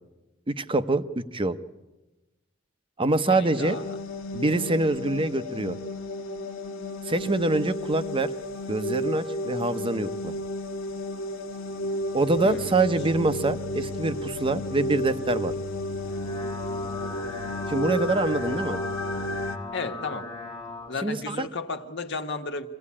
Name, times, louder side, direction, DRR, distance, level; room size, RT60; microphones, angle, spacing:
voice 1, 0.5-1.6 3.0-3.8 4.3-5.8 7.1-8.3 8.7-10.3 12.1-15.5 17.7-18.8 21.0-21.5, right 2 dB, 25° right, 11 dB, 0.8 m, -25 dB
voice 2, 3.3-3.8 12.4-12.7 19.7-20.3 20.9-22.7, left 3 dB, 60° left, 6 dB, 1.4 m, -33 dB
sound 1, 3.5-19.6, left 1 dB, 80° left, 1.4 m, -32 dB
sound 2, 16.0-20.9, left 3 dB, 25° left, 1.4 m, -38 dB
24.5 x 17.0 x 8.6 m, 1.0 s
head